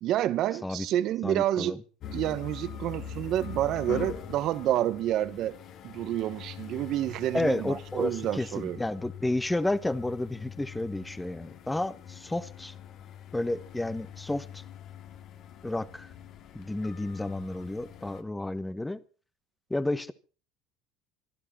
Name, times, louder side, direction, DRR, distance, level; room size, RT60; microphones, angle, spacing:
voice 1, 0.0-1.8 2.1-5.6 5.8-8.8, right 12 dB, 50° right, 1.2 m, -29 dB
voice 2, 1.2-1.8 7.3-12.7 13.3-14.6 15.6-16.1 16.5-19.0 19.7-20.1, left 2 dB, 5° left, 1.2 m, -31 dB
sound 1, 2.0-18.2, left 8 dB, 50° left, 2.4 m, -43 dB
24.5 x 12.0 x 4.3 m
cardioid pair, 125°, 0 cm